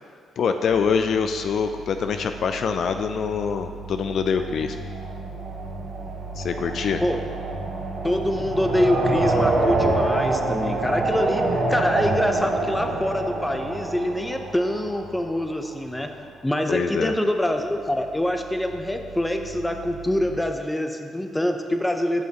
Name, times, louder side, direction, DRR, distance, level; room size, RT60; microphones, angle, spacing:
voice 1, 0.4-4.8 6.4-7.0 16.7-17.1, left 6 dB, 60° left, 7 dB, 0.3 m, -24 dB
sound 1, 0.7-16.6 17.3-20.4, right 3 dB, 15° right, 1.5 m, -39 dB
sound 2, 4.4-15.3, right 2 dB, 75° right, 1.9 m, -26 dB
voice 2, 8.0-16.1 16.4-22.2, left 1 dB, 10° left, 5 dB, 0.6 m, -25 dB
11.0 x 5.5 x 2.9 m, 2.1 s
cardioid pair, 90°, 0 cm